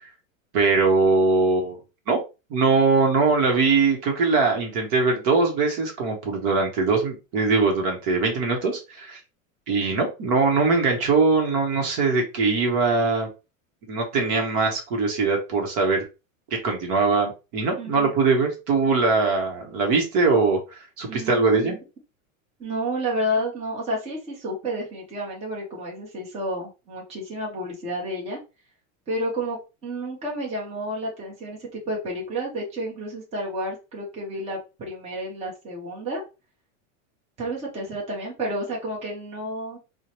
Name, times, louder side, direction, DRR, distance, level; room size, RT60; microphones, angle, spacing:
voice 1, 0.5-1.8 2.1-2.2 2.5-9.2 9.7-13.3 13.9-16.0 16.5-21.8, right 4 dB, 45° right, 2 dB, 1.0 m, -21 dB
voice 2, 17.8-18.1 21.1-21.8 22.6-28.4 29.1-36.2 37.4-39.8, equal, 15° right, -3 dB, 0.9 m, -31 dB
4.4 x 2.2 x 3.0 m, 0.29 s
supercardioid pair, 165°, 41 cm